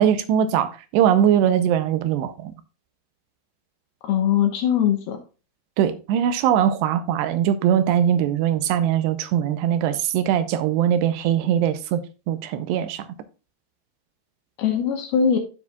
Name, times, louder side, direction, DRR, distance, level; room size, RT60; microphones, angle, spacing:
voice 1, 0.0-2.5 5.8-12.0 12.3-13.1, right 9 dB, 80° right, 2.5 m, -21 dB
voice 2, 4.0-5.2 14.6-15.4, left 8 dB, 70° left, 2.5 m, -21 dB
14.0 x 4.8 x 2.3 m
omnidirectional pair, 5.4 m